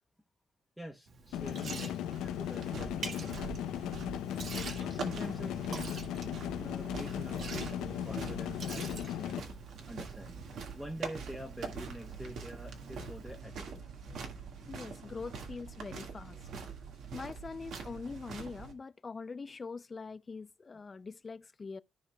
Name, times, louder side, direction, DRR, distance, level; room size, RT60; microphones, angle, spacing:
voice 1, 0.8-3.3 4.8-5.9 6.6-9.4 9.9-10.3 10.8-13.8, equal, 5° right, 1.0 m, -46 dB
Liquid, 1.1-13.4, right 5 dB, 60° right, 1.5 m, -48 dB
sound 1, 1.3-9.4, left 11 dB, 90° left, 0.6 m, -37 dB
sound 2, 2.1-18.7, right 5 dB, 75° right, 1.8 m, -44 dB
voice 2, 14.7-16.4 17.1-21.8, left 4 dB, 30° left, 0.5 m, -43 dB
14.0 x 4.9 x 2.3 m
cardioid pair, 90°, 0 cm